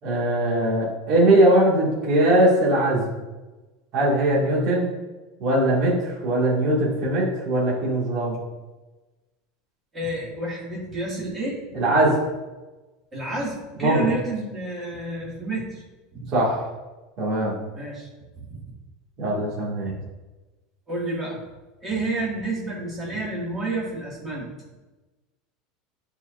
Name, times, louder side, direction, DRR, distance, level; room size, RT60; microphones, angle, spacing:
voice 1, 0.0-3.1 3.9-4.9 5.4-8.4 11.7-12.2 13.8-14.1 16.3-16.6 17.2-17.5 19.2-19.9, right 1 dB, 40° right, -7 dB, 2.1 m, -20 dB
voice 2, 9.9-11.6 13.1-15.8 16.1-16.3 17.7-18.1 18.5-18.6 19.8-19.9 20.9-21.4 21.8-24.5, right 2 dB, 15° right, -6 dB, 2.2 m, -30 dB
10.5 x 4.6 x 2.6 m, 1.2 s
supercardioid pair, 180°, 0 cm